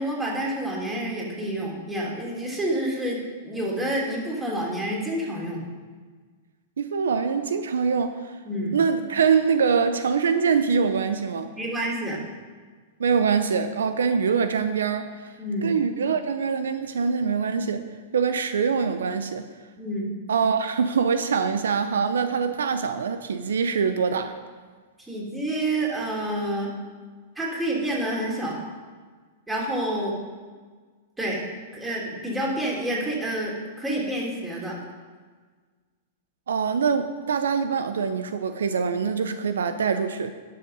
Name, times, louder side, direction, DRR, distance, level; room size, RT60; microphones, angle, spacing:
voice 1, 0.0-5.6 8.4-8.8 11.5-12.2 15.4-15.7 19.8-20.1 25.0-26.7 27.3-28.6 29.5-30.1 31.2-31.4 31.7-34.7, right 1 dB, 10° right, -4 dB, 3.2 m, -28 dB
voice 2, 6.8-8.4 8.7-11.5 13.0-15.3 15.6-17.8 18.1-19.5 20.3-24.4 36.5-40.3, right 6 dB, 80° right, 10 dB, 0.6 m, -24 dB
12.0 x 5.8 x 5.4 m, 1.5 s
hypercardioid pair, 115°, 0 cm